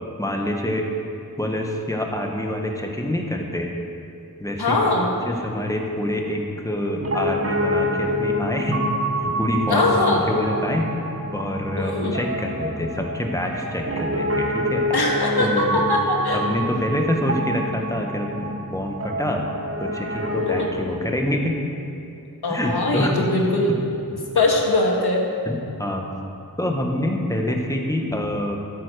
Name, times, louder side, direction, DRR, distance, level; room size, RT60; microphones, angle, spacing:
voice 1, 0.2-0.9 1.4-3.7 4.4-4.8 5.2-8.8 9.2-10.9 11.3-14.9 15.4-15.9 16.3-19.5 19.8-21.6 22.5-23.1 25.4-26.1 26.6-28.6, left 1 dB, 10° left, 1 dB, 1.4 m, -26 dB
voice 2, 4.6-5.1 9.7-10.2 11.8-12.2 14.9-16.4 20.5-20.7 22.4-23.8 24.3-25.2, left 2 dB, 80° left, -1 dB, 1.8 m, -21 dB
Piano, 7.0-20.7, equal, 40° right, 0.9 m, -27 dB
13.0 x 8.7 x 5.0 m, 2.6 s
wide cardioid pair, 70°, 38 cm